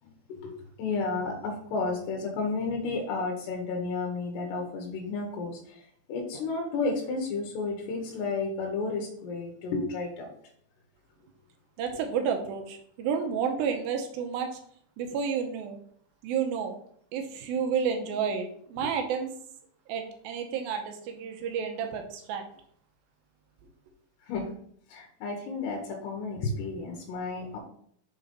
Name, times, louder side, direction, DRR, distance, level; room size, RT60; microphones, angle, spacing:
voice 1, 0.0-10.3 24.2-24.5 24.9-27.6, left 3 dB, 90° left, 0 dB, 3.3 m, -32 dB
voice 2, 11.8-14.6 15.0-15.8 16.2-16.7 17.1-19.3 19.9-22.5, right 6 dB, 75° right, 5 dB, 2.4 m, -30 dB
7.1 x 3.9 x 5.3 m, 0.63 s
omnidirectional pair, 4.7 m